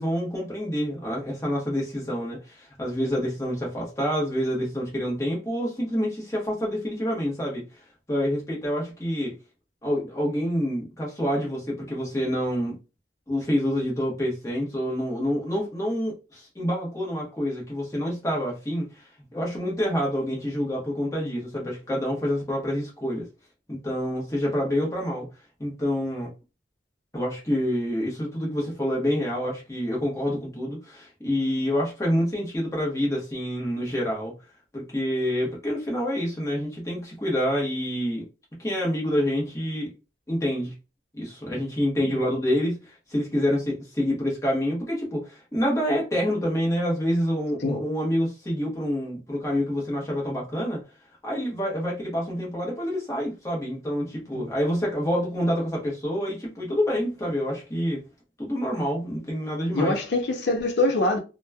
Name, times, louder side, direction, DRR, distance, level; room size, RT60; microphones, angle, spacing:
voice 1, 0.0-7.8 8.1-9.3 9.8-12.8 13.3-23.3 23.7-25.3 25.6-26.3 27.1-34.3 34.7-38.2 38.6-39.9 40.3-40.7 41.1-50.8 51.2-58.0 58.4-59.9, equal, 15° left, 0.9 m, -27 dB
voice 2, 59.7-61.2, left 2 dB, 65° left, 0.6 m, -24 dB
3.0 x 2.2 x 2.2 m
head